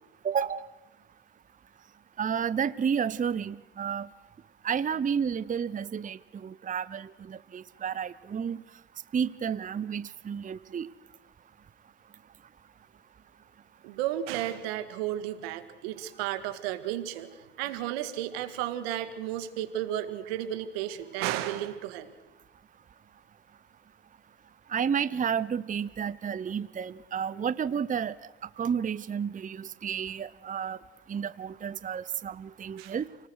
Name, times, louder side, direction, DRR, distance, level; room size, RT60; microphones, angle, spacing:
voice 1, 0.2-0.7 2.2-4.1 4.6-8.6 9.1-10.9 24.7-28.2 28.6-30.8 31.1-33.1, right 7 dB, 25° right, 17 dB, 0.8 m, -31 dB
voice 2, 13.8-17.3 17.6-22.1 32.8-32.9, right 12 dB, 85° right, 11 dB, 2.0 m, -33 dB
30.0 x 19.5 x 6.4 m, 1.1 s
supercardioid pair, 75°, 30 cm